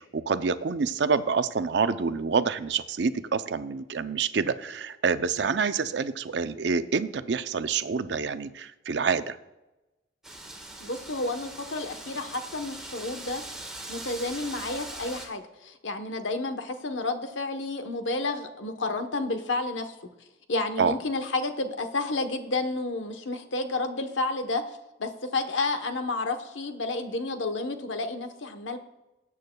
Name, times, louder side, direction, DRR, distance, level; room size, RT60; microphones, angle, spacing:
voice 1, 0.0-9.4 20.8-21.0, right 5 dB, 65° right, 12 dB, 0.5 m, -27 dB
Wind, 10.2-15.3, right 1 dB, 5° right, 1.4 m, -41 dB
voice 2, 10.8-13.4 13.9-19.9 20.5-28.8, left 2 dB, 85° left, 7 dB, 1.0 m, -31 dB
19.5 x 8.4 x 2.3 m, 1.0 s
head